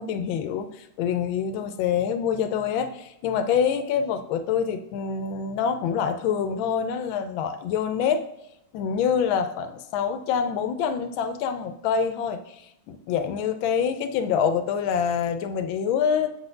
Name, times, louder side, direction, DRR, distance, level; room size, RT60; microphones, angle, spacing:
voice 1, 0.0-8.2 8.7-12.6 12.9-16.4, left 7 dB, 90° left, 9 dB, 1.4 m, -26 dB
7.3 x 4.2 x 6.5 m, 0.88 s
omnidirectional pair, 2.1 m